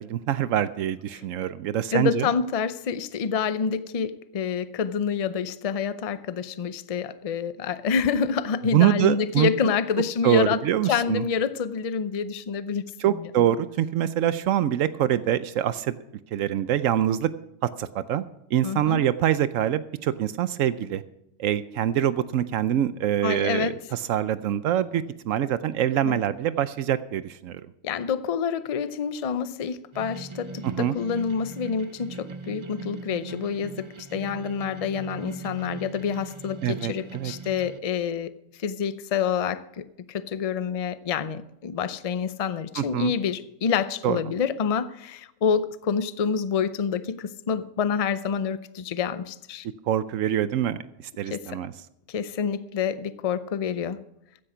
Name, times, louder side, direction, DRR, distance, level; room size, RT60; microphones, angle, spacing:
voice 1, 0.0-2.3 8.7-9.5 10.2-11.3 13.0-16.0 16.3-17.3 17.8-18.2 18.5-21.0 21.4-27.6 30.6-30.9 36.6-37.3 42.8-43.1 44.0-44.2 49.9-50.8 51.2-51.7, right 11 dB, 80° right, 14 dB, 1.0 m, -24 dB
voice 2, 1.9-10.6 10.9-13.5 18.6-19.0 23.2-23.8 26.0-26.2 27.8-38.3 38.6-49.7 51.3-51.6 52.1-54.0, left 6 dB, 45° left, 14 dB, 0.5 m, -27 dB
sound 1, 29.9-37.8, right 3 dB, 35° right, 0.4 m, -40 dB
15.0 x 10.0 x 5.0 m, 0.84 s
omnidirectional pair, 1.4 m